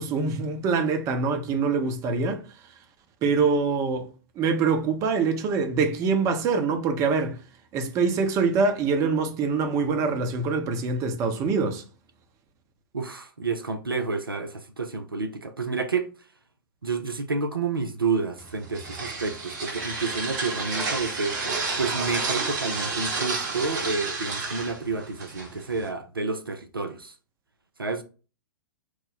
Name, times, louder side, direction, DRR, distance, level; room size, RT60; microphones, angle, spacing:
voice 1, 0.0-2.4 3.2-4.1 4.4-7.4 7.7-11.8, right 4 dB, 25° right, 0.6 m, -24 dB
voice 2, 12.9-16.1 16.8-21.4 21.8-27.1 27.8-28.0, right 4 dB, 85° right, 0.4 m, -29 dB
sound 1, 18.4-25.9, right 3 dB, 55° right, 1.0 m, -31 dB
3.1 x 2.0 x 4.0 m
figure-of-eight pair, 105°, 12 cm